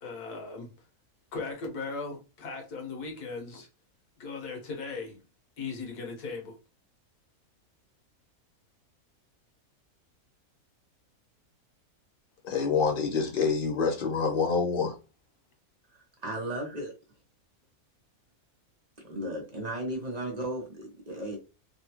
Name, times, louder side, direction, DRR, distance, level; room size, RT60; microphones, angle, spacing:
voice 1, 0.0-0.7 1.3-3.7 4.2-5.2 5.6-6.6, left 4 dB, 85° left, 1.6 m, -37 dB
voice 2, 12.4-15.0, left 5 dB, 50° left, 0.6 m, -27 dB
voice 3, 15.9-16.9 19.0-21.4, right 1 dB, 35° right, 0.7 m, -35 dB
3.5 x 2.3 x 2.8 m
omnidirectional pair, 1.6 m